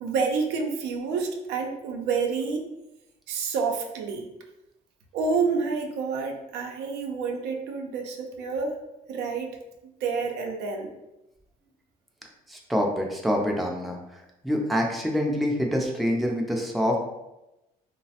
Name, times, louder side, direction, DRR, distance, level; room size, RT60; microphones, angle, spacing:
voice 1, 0.0-2.6 3.3-4.3 5.1-8.7 9.1-9.6 10.0-10.9, right 5 dB, 85° right, 2 dB, 0.5 m, -28 dB
voice 2, 12.5-14.0 14.4-17.0, equal, ahead, 0 dB, 0.4 m, -26 dB
3.1 x 2.0 x 2.7 m, 0.93 s
cardioid pair, 110°, 17 cm